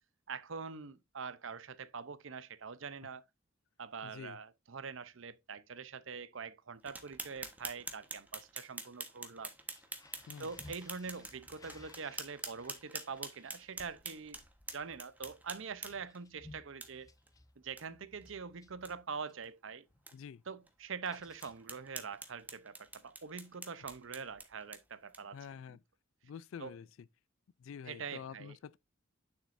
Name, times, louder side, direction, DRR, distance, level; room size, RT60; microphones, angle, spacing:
voice 1, 0.3-3.2 3.8-9.5 10.4-14.4 14.7-17.1 17.6-19.8 20.5-25.4 25.7-25.8 26.6-26.7 27.9-28.6, right 5 dB, 65° right, 0.7 m, -44 dB
voice 2, 4.0-4.4 10.3-10.5 20.1-20.4 25.3-25.8 26.2-26.9 27.6-28.8, left 7 dB, 70° left, 0.3 m, -47 dB
sound 1, 6.9-16.2 16.8-16.9 17.3-17.4 17.8-17.9 18.2-18.3 18.7-18.9 19.4-19.5 20.1-20.2 20.7-20.8 21.4-25.4, right 2 dB, 10° right, 1.2 m, -46 dB
sound 2, 9.6-19.5 19.9-20.2 20.4-22.0, left 2 dB, 15° left, 0.7 m, -60 dB
9.4 x 7.1 x 2.6 m
head